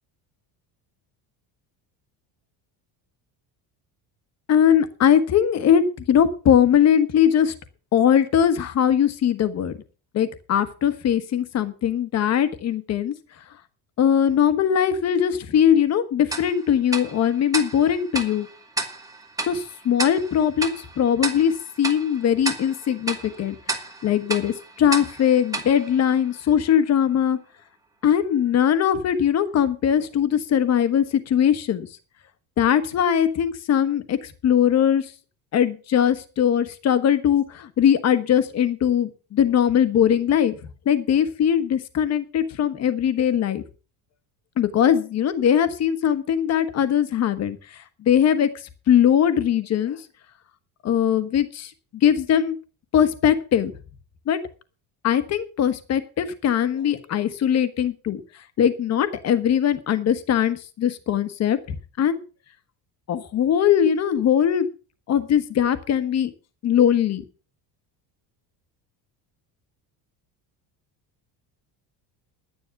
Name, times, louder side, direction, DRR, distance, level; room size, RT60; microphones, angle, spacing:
voice 1, 4.5-7.5 7.9-9.7 10.1-13.1 14.0-18.5 19.5-23.5 24.0-27.4 28.0-31.9 32.6-35.0 35.5-40.5 40.8-43.6 44.6-47.6 48.0-48.5 48.9-50.0 50.8-51.7 52.0-52.6 52.9-53.7 54.3-54.4 55.0-58.2 58.6-62.2 63.1-64.7 65.1-66.3 66.6-67.2, left 9 dB, 35° left, 11 dB, 1.3 m, -20 dB
Tick-tock, 16.3-26.8, right 2 dB, 10° right, 1.5 m, -33 dB
11.0 x 10.5 x 5.9 m, 0.36 s
cardioid pair, 165°, 43 cm